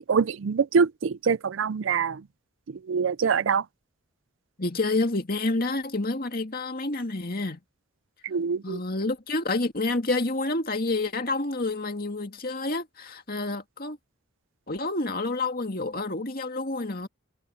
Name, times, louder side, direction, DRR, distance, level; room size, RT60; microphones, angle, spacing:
voice 1, 0.0-2.2 2.9-3.6 8.2-8.8, right 6 dB, 65° right, 0.4 m, -24 dB
voice 2, 4.6-7.6 8.6-14.0 14.7-17.1, left 2 dB, 45° left, 2.2 m, -28 dB
head